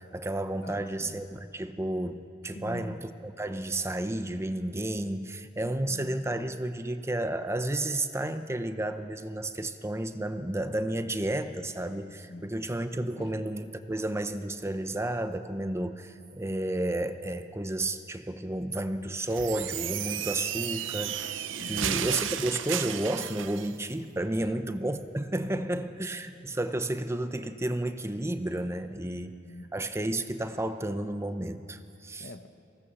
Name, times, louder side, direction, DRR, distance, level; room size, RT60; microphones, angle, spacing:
voice 1, 0.0-2.2 2.4-29.4 29.7-32.3, right 1 dB, 15° right, 9 dB, 0.7 m, -32 dB
voice 2, 0.6-1.3 2.5-3.0 5.6-6.2 12.1-12.5 13.0-13.4 21.6-22.1 24.4-24.5 25.4-25.9 29.2-29.7 32.2-32.5, left 2 dB, 55° left, 9 dB, 1.1 m, -45 dB
sound 1, 19.3-23.7, right 10 dB, 80° right, 0.7 m, -33 dB
24.5 x 17.0 x 7.0 m, 2.5 s
head